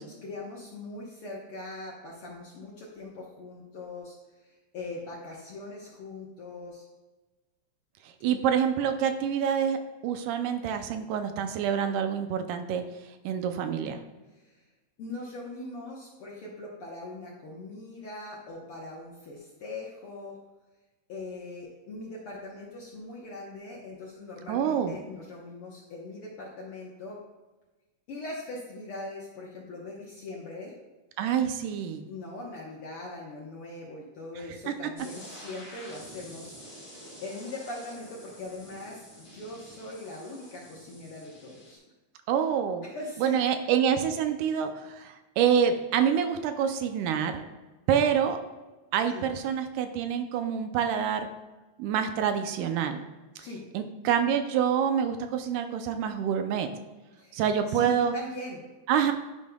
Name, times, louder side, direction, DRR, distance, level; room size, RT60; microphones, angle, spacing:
voice 1, 0.0-6.9 14.3-14.6 15.0-20.4 21.1-27.2 28.1-30.7 32.1-36.6 37.2-41.8 42.8-43.4 49.1-49.3 53.4-53.6 57.2-57.4 57.7-58.6, left 2 dB, 65° left, -4 dB, 1.4 m, -41 dB
voice 2, 8.2-12.8 13.2-14.0 24.5-24.9 31.2-32.1 34.7-34.8 42.3-42.8 43.2-47.4 47.9-48.4 48.9-51.3 51.8-53.0 53.7-56.7 57.3-58.1 58.9-59.1, right 8 dB, 85° right, 7 dB, 2.1 m, -27 dB
sound 1, 35.0-41.8, equal, 10° left, 1.1 m, -48 dB
11.5 x 5.3 x 2.3 m, 1.2 s
omnidirectional pair, 3.7 m